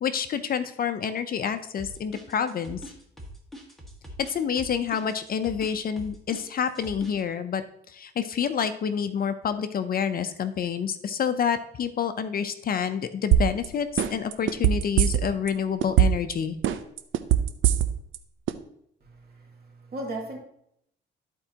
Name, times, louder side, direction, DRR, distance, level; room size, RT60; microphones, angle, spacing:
voice 1, 0.0-2.8 4.3-7.6 7.9-16.6, left 7 dB, 50° left, 10 dB, 0.6 m, -28 dB
sound 1, 1.8-7.2, equal, ahead, 1.8 m, -42 dB
sound 2, 13.3-13.7 14.0-15.5 15.8-16.3 16.6-18.2 18.5-18.6, right 10 dB, 80° right, 0.6 m, -20 dB
voice 2, 19.0-20.4, right 1 dB, 50° right, -2 dB, 2.6 m, -37 dB
13.0 x 4.5 x 2.8 m, 0.73 s
cardioid pair, 90°, 20 cm